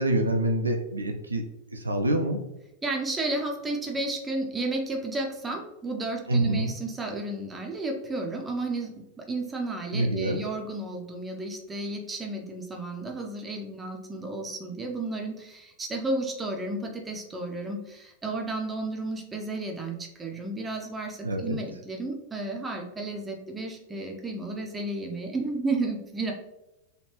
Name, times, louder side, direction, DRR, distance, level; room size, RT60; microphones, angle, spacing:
voice 1, 0.0-1.4 1.7-2.4 6.3-6.7 9.9-10.4 21.2-21.6, right 1 dB, 80° right, 3 dB, 0.3 m, -26 dB
voice 2, 2.8-26.3, right 2 dB, 15° right, 2 dB, 0.5 m, -32 dB
3.1 x 2.4 x 2.9 m, 0.91 s
figure-of-eight pair, 90°, 0 cm